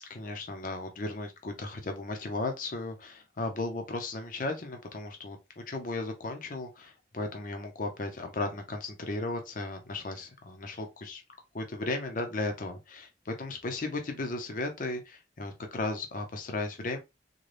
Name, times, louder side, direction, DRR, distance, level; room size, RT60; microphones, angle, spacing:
voice 1, 0.1-11.2 11.5-17.0, left 2 dB, 50° left, 0.7 m, -35 dB
3.9 x 2.2 x 3.2 m
head